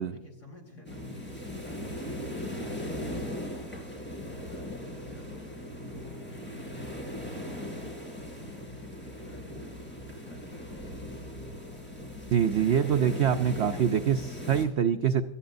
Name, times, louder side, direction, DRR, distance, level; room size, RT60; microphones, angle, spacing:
voice 1, 0.0-3.8 4.2-7.9 8.4-9.8 10.0-11.1, left 2 dB, 45° left, 0 dB, 4.1 m, -52 dB
sound 1, 0.8-14.6, left 1 dB, 5° left, 4.6 m, -39 dB
voice 2, 12.3-15.2, right 8 dB, 75° right, 7 dB, 0.6 m, -25 dB
25.5 x 13.0 x 2.6 m, 0.97 s
omnidirectional pair, 1.8 m